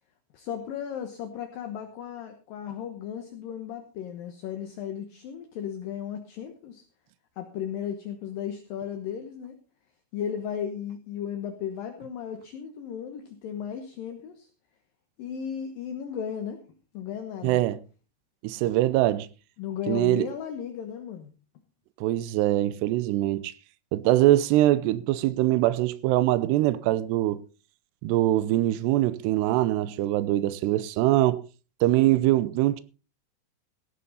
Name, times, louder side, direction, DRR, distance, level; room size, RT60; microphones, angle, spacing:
voice 1, 0.3-6.8 7.4-9.6 10.1-14.5 15.2-16.6 16.9-17.6 19.6-21.3, left 8 dB, 65° left, 2.6 m, -35 dB
voice 2, 17.4-17.8 18.4-19.3 19.9-20.3 22.0-23.5 23.9-27.4 28.0-31.4 31.8-32.8, right 15 dB, 85° right, 2.9 m, -23 dB
16.5 x 11.0 x 4.0 m
omnidirectional pair, 4.8 m